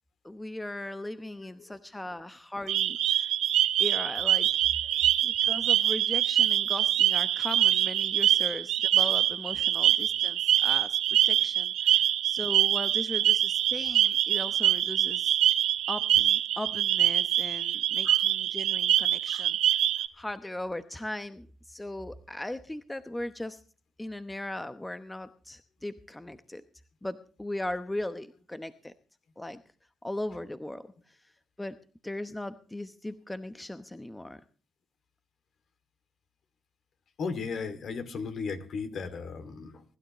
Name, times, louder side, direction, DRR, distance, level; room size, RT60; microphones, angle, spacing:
voice 1, 0.2-3.3 3.8-4.6 5.2-11.0 11.2-15.4 15.9-23.6 24.0-26.6 27.0-28.9 29.4-29.6 30.0-31.3 31.6-31.8 32.0-34.4, left 1 dB, 10° left, 11 dB, 0.9 m, -38 dB
sound 1, 2.7-20.1, right 12 dB, 80° right, 0.9 m, -25 dB
voice 2, 37.2-39.8, left 5 dB, 60° left, 10 dB, 2.4 m, -36 dB
23.5 x 12.0 x 3.1 m, 0.38 s
cardioid pair, 90°, 0 cm